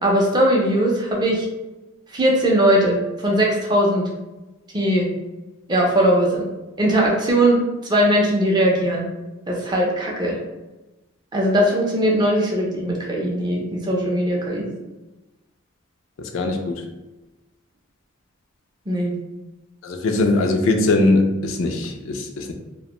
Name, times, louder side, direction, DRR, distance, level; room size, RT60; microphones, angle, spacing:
voice 1, 0.0-1.5 2.1-4.1 4.7-5.1 5.7-6.4 6.8-7.6 7.9-9.1 9.5-10.4 11.3-14.7 18.9-19.2, right 1 dB, 20° right, -2 dB, 0.4 m, -19 dB
voice 2, 16.2-16.8 19.8-22.5, left 2 dB, 70° left, 4 dB, 0.3 m, -21 dB
2.4 x 2.1 x 2.9 m, 1.1 s
head